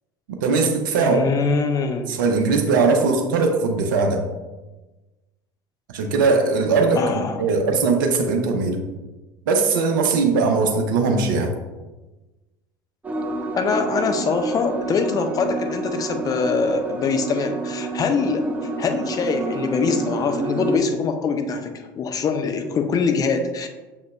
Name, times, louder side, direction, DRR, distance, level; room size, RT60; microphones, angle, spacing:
voice 1, 0.4-1.2 2.1-4.2 5.9-8.8 9.5-11.5, right 4 dB, 70° right, 3 dB, 0.5 m, -20 dB
voice 2, 1.0-2.1 7.0-7.4 13.6-18.5 18.8-23.7, left 4 dB, 35° left, 7 dB, 0.5 m, -23 dB
sound 1, 13.0-20.8, right 2 dB, 15° right, 0.6 m, -29 dB
6.2 x 2.8 x 2.3 m, 1.1 s
figure-of-eight pair, 70°, 11 cm